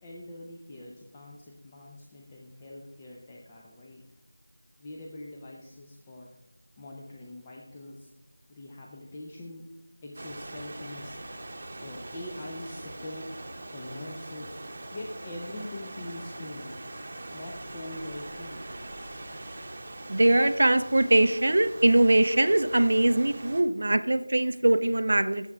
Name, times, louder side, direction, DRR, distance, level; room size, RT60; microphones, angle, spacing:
voice 1, 0.0-4.0 4.8-6.3 6.8-8.1 8.5-9.6 10.0-11.2 11.8-13.3 13.7-14.5 14.9-16.8 17.3-18.8, left 1 dB, 15° left, -2 dB, 0.6 m, -43 dB
sound 1, 10.1-23.6, right 2 dB, 30° right, 1.0 m, -42 dB
voice 2, 20.1-25.5, right 1 dB, 55° right, 9 dB, 0.5 m, -22 dB
11.5 x 7.3 x 2.4 m, 0.95 s
figure-of-eight pair, 175°, 0 cm